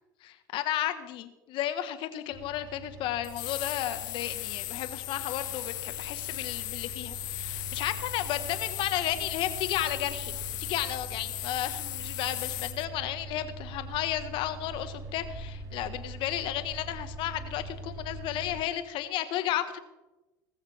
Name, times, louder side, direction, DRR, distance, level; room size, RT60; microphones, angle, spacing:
voice 1, 0.5-19.8, left 12 dB, 55° left, 10 dB, 1.6 m, -33 dB
sound 1, 2.3-18.6, right 2 dB, 35° right, 4.8 m, -43 dB
sound 2, 3.2-12.8, left 19 dB, 70° left, 0.5 m, -37 dB
19.0 x 14.5 x 3.6 m, 1.1 s
hypercardioid pair, 75°, 10 cm